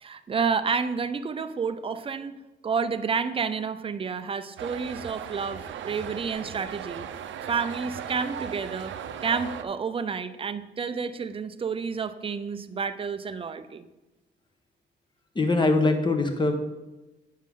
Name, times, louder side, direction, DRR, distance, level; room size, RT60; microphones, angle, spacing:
voice 1, 0.0-2.4 2.6-7.1 7.5-8.9 9.2-13.9, right 5 dB, 25° right, 10 dB, 0.5 m, -30 dB
sound 1, 4.6-9.6, right 8 dB, 70° right, 0.7 m, -37 dB
voice 2, 15.3-16.5, left 2 dB, 25° left, 6 dB, 1.2 m, -22 dB
9.1 x 6.3 x 3.7 m, 1.1 s
cardioid pair, 90°, 20 cm